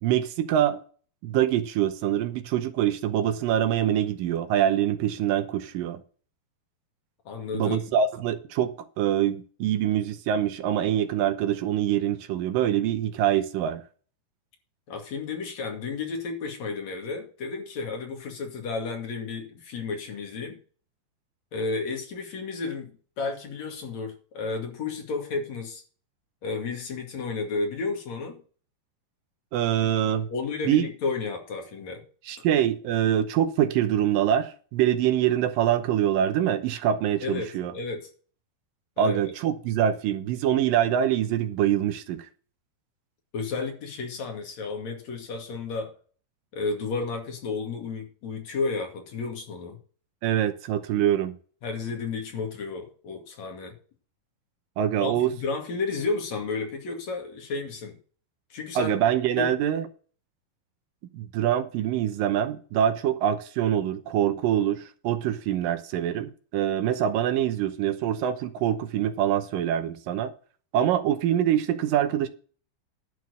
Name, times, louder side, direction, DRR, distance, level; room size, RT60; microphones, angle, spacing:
voice 1, 0.0-0.8 1.2-6.0 7.5-13.8 29.5-30.3 30.7-30.9 32.3-37.7 39.0-42.3 50.2-51.4 54.8-55.3 58.8-59.9 61.1-70.3 70.7-72.3, right 10 dB, 75° right, 2.4 m, -24 dB
voice 2, 7.2-7.8 14.9-20.6 21.5-25.8 26.4-28.4 30.3-32.0 32.4-32.5 37.2-38.1 39.0-39.2 43.3-45.9 46.5-49.8 51.6-53.7 55.0-58.0 58.5-58.9 59.4-59.5, left 4 dB, 50° left, 3.3 m, -32 dB
11.5 x 4.5 x 8.3 m
omnidirectional pair, 4.3 m